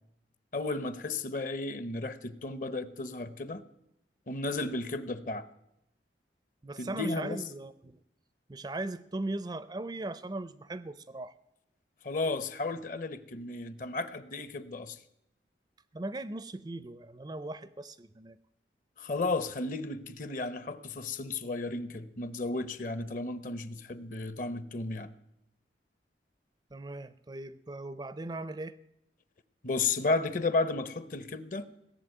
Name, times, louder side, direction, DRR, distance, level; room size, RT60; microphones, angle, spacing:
voice 1, 0.5-3.6 4.3-5.5 6.8-7.4 12.0-15.0 19.0-25.1 29.6-31.7, left 3 dB, 45° left, 14 dB, 0.8 m, -33 dB
voice 2, 6.6-8.0 8.5-11.4 15.9-18.4 26.7-28.8, right 2 dB, 25° right, 15 dB, 0.4 m, -38 dB
17.0 x 7.3 x 9.1 m, 0.82 s
head